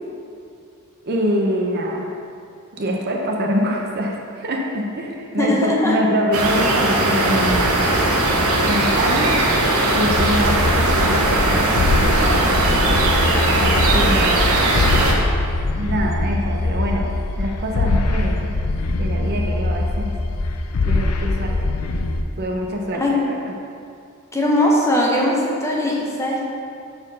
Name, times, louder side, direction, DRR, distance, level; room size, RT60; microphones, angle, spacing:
voice 1, 1.0-2.1 2.7-7.9 8.6-9.4 9.9-12.7 13.5-14.6 15.8-17.1 17.4-18.5 19.0-20.1 20.8-21.6 22.4-23.5, equal, 45° right, 0 dB, 0.8 m, -24 dB
voice 2, 5.4-6.0 23.0-23.1 24.3-26.4, left 1 dB, 15° left, -3 dB, 0.9 m, -19 dB
sound 1, 6.3-15.1, right 2 dB, 75° right, 1.0 m, -18 dB
sound 2, 10.1-22.2, left 2 dB, 80° left, 0.5 m, -22 dB
7.0 x 4.3 x 5.4 m, 2.4 s
head